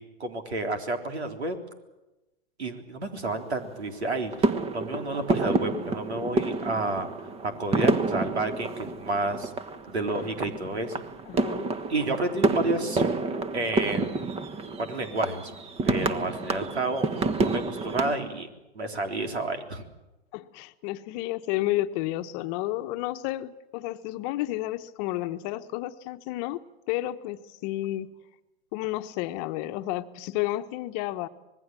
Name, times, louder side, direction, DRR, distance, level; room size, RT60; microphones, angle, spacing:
voice 1, 0.2-1.6 2.6-7.1 7.4-9.5 9.9-11.0 11.9-13.0 13.5-14.4 14.8-15.5 15.8-17.1 17.4-19.8, right 2 dB, 90° right, 5 dB, 3.7 m, -30 dB
sound 1, 3.2-3.9 4.3-18.2, right 3 dB, 20° right, 1.4 m, -29 dB
voice 2, 11.3-11.7 20.3-28.1 28.7-31.3, left 16 dB, 40° left, 10 dB, 1.2 m, -31 dB
25.5 x 20.5 x 7.5 m, 0.99 s
hypercardioid pair, 115°, 32 cm